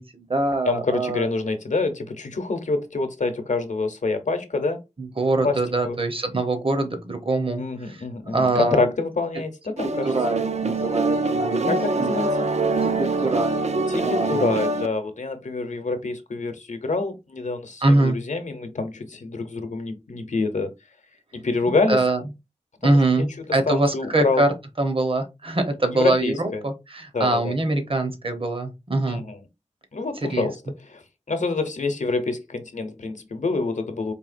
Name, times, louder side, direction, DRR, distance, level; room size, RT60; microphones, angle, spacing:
voice 1, 0.0-1.3 5.0-8.0 8.3-8.9 10.0-12.1 12.8-13.6 14.0-14.6 17.8-18.2 21.9-22.2 22.8-29.2 30.2-30.5, right 2 dB, 50° right, 1.0 m, -24 dB
voice 2, 0.7-4.8 5.4-5.6 5.8-6.0 7.6-10.4 11.7-12.5 13.9-20.7 21.3-22.0 22.8-23.2 23.7-24.5 25.9-26.6 27.1-27.5 29.1-29.4 29.9-30.6 30.9-34.1, left 3 dB, 90° left, 0.7 m, -26 dB
sound 1, 9.8-14.9, right 3 dB, 65° right, 0.4 m, -24 dB
4.6 x 2.8 x 2.5 m
wide cardioid pair, 75°, 12 cm